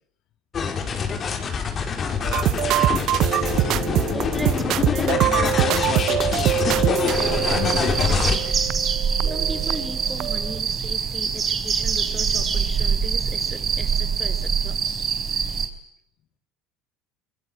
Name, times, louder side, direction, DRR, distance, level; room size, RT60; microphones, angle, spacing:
sound 1, 0.5-8.4, left 6 dB, 35° left, 5.3 m, -25 dB
sound 2, 2.2-9.9 10.2-10.5, right 14 dB, 55° right, 1.1 m, -24 dB
voice 1, 4.1-5.9 9.2-14.9, right 1 dB, 5° right, 5.1 m, -37 dB
voice 2, 5.0-8.2, left 10 dB, 55° left, 2.5 m, -31 dB
sound 3, 7.1-15.7, right 6 dB, 35° right, 4.7 m, -24 dB
24.5 x 22.5 x 9.1 m
hypercardioid pair, 70°, 0 cm